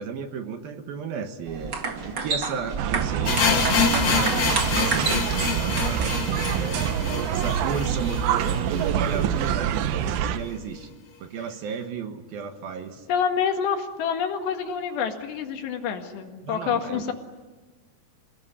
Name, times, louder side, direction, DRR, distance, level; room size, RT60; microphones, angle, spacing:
voice 1, 0.0-1.8 2.0-6.9 7.3-8.6 9.0-10.9 11.2-13.1 16.4-17.1, right 6 dB, 65° right, 7 dB, 2.9 m, -34 dB
sound 1, 1.5-6.8, right 4 dB, 45° right, 1.5 m, -31 dB
sound 2, 2.8-10.4, right 9 dB, 90° right, 3.2 m, -26 dB
sound 3, 3.3-9.2 9.4-9.5 9.8-9.9 10.5-10.6, left 5 dB, 45° left, 3.4 m, -26 dB
voice 2, 13.1-17.1, left 7 dB, 80° left, 5 dB, 4.1 m, -27 dB
27.5 x 18.5 x 9.9 m, 1.3 s
omnidirectional pair, 4.9 m